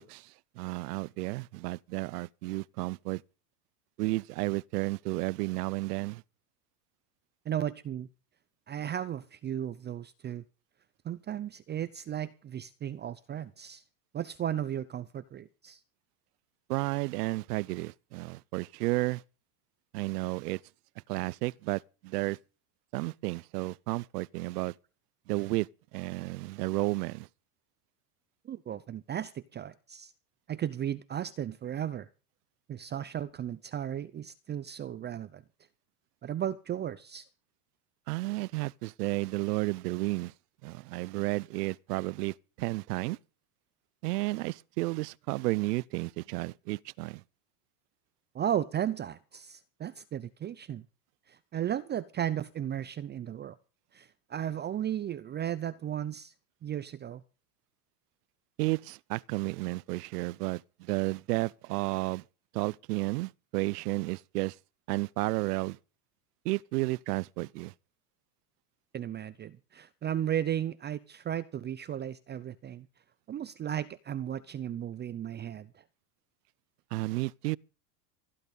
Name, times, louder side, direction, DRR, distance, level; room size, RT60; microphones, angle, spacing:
voice 1, 0.0-3.2 4.0-6.2 16.7-19.2 19.9-20.6 21.1-22.4 22.9-24.7 25.3-27.3 38.1-40.3 40.6-43.2 44.0-47.2 58.6-62.2 62.5-64.6 64.9-65.8 66.4-67.7 76.9-77.6, right 21 dB, 80° right, 0.6 m, -32 dB
voice 2, 7.5-8.1 8.7-10.4 11.0-13.8 14.1-15.8 28.4-30.1 30.5-32.1 32.7-35.4 36.2-37.3 48.3-50.8 51.3-53.6 53.9-56.3 56.6-57.2 68.9-72.9 73.3-75.8, right 10 dB, 20° right, 0.6 m, -35 dB
16.5 x 11.0 x 5.2 m
supercardioid pair, 120°, 47 cm